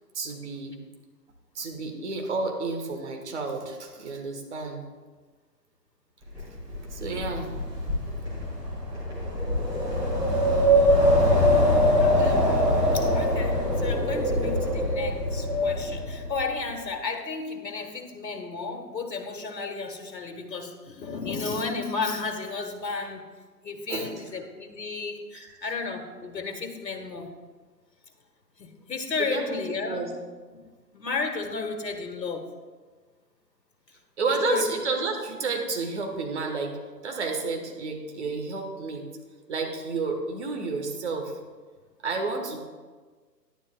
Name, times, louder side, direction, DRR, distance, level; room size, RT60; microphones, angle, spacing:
voice 1, 0.1-0.8 1.5-4.8 6.9-7.5 23.9-24.1 25.3-25.7 29.2-30.1 34.2-36.8 37.0-39.0 39.5-41.3 42.0-42.6, right 4 dB, 40° right, 3 dB, 1.4 m, -31 dB
Wind, 6.4-16.4, equal, 10° right, 1.6 m, -23 dB
voice 2, 12.0-12.6 12.9-23.2 23.6-27.3 28.6-30.1 30.9-32.5 34.4-34.7, left 4 dB, 80° left, 4 dB, 1.6 m, -33 dB
11.0 x 9.9 x 2.2 m, 1.4 s
figure-of-eight pair, 145°, 50 cm